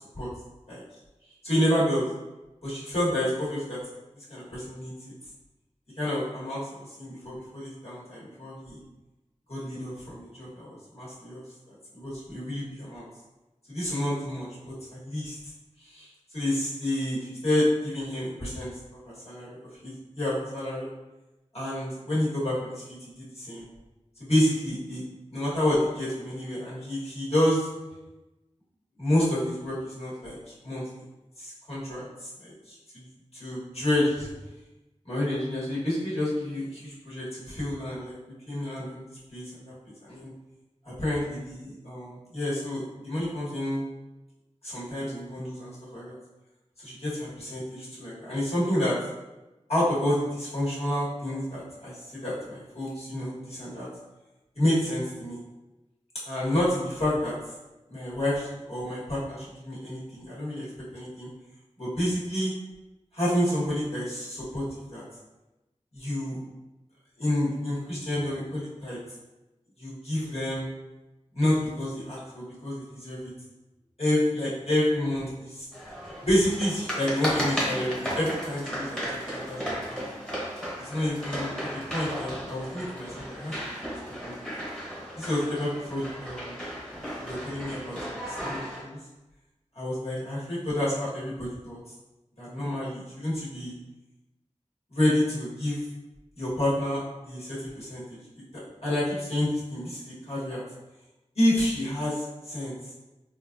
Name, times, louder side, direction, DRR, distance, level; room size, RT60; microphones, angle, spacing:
voice 1, 1.4-2.1 2.6-3.8 4.3-5.1 6.0-8.8 9.5-11.4 11.7-13.1 13.7-15.4 15.8-18.7 19.0-19.6 19.8-20.9 21.5-22.8 23.2-23.6 24.2-25.0 25.3-27.7 29.0-30.4 30.6-30.8 31.4-33.1 33.4-34.3 35.0-38.2 38.5-39.7 40.0-40.3 40.8-43.8 44.6-46.2 46.8-49.0 49.7-53.9 54.5-55.4 56.2-57.3 57.9-60.6 60.9-61.3 61.8-62.5 63.1-64.6 64.9-65.0 65.9-66.4 67.2-69.0 69.8-70.6 71.3-73.3 74.0-75.6 76.2-80.0 80.8-81.5 81.9-83.7 84.2-84.3 85.2-86.6 87.2-89.0 89.7-91.8 92.4-93.7 94.9-95.8 96.4-98.0 98.5-100.6 101.3-102.7, left 1 dB, 55° left, -9 dB, 1.5 m, -29 dB
sound 1, 75.7-88.8, equal, 5° left, 0.9 m, -35 dB
3.7 x 2.5 x 2.6 m, 1.0 s
wide cardioid pair, 55°, 12 cm